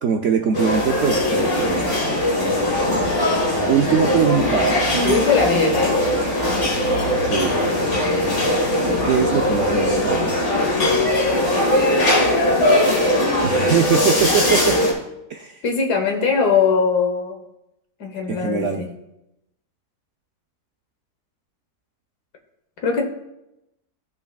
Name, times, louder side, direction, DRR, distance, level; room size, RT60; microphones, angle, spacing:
voice 1, 0.0-2.2 3.7-5.0 7.2-7.6 9.0-10.4 13.4-14.8 15.3-15.5 18.3-18.9, right 7 dB, 65° right, 3 dB, 0.8 m, -22 dB
sound 1, 0.5-14.9, left 1 dB, 60° left, 2.3 m, -20 dB
voice 2, 5.0-6.1 15.6-17.4 18.0-18.9 22.8-23.1, left 5 dB, 80° left, 4 dB, 1.7 m, -20 dB
15.5 x 5.7 x 2.3 m, 0.88 s
omnidirectional pair, 1.7 m